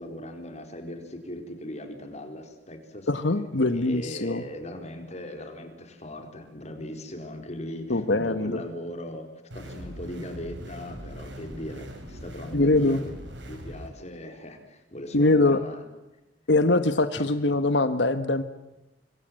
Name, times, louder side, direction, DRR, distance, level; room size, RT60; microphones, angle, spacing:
voice 1, 0.0-3.1 3.7-9.3 9.5-13.1 13.5-15.8 17.1-17.3, left 1 dB, 40° left, 5 dB, 4.5 m, -39 dB
voice 2, 3.1-4.4 7.9-8.6 12.5-13.0 15.1-15.6 16.5-18.4, left 2 dB, 75° left, 10 dB, 1.4 m, -22 dB
sound 1, 9.5-13.9, equal, 85° right, 5.5 m, -41 dB
26.5 x 24.0 x 7.7 m, 1.0 s
head